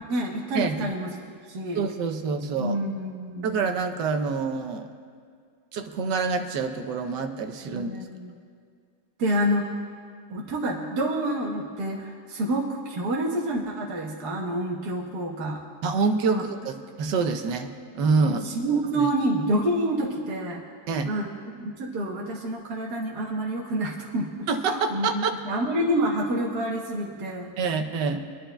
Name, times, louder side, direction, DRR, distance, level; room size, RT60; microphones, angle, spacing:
voice 1, 0.1-1.9 2.6-3.6 7.6-8.3 9.2-9.8 10.3-15.6 16.3-16.4 18.2-20.6 21.1-21.3 21.5-27.5 28.1-28.2, right 1 dB, 70° right, -2 dB, 1.7 m, -28 dB
voice 2, 1.7-2.8 3.4-4.9 5.7-7.9 15.8-17.7 17.9-18.5 18.9-19.1 20.9-21.1 24.5-25.4 27.6-28.2, right 4 dB, 85° right, 6 dB, 1.5 m, -26 dB
25.0 x 11.0 x 2.3 m, 2.1 s
omnidirectional pair, 1.8 m